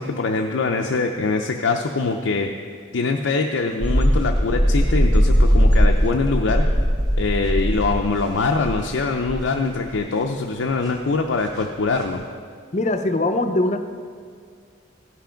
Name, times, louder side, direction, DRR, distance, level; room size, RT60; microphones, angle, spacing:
voice 1, 0.0-2.5 2.9-6.6 7.2-12.2, left 3 dB, 85° left, 2 dB, 0.5 m, -23 dB
sound 1, 3.8-9.9 10.2-10.3 10.9-11.0 11.5-11.6 12.0-12.1, equal, 20° right, 0.9 m, -19 dB
voice 2, 12.7-13.9, left 2 dB, 35° left, 8 dB, 0.5 m, -21 dB
15.0 x 5.8 x 5.1 m, 2.1 s
head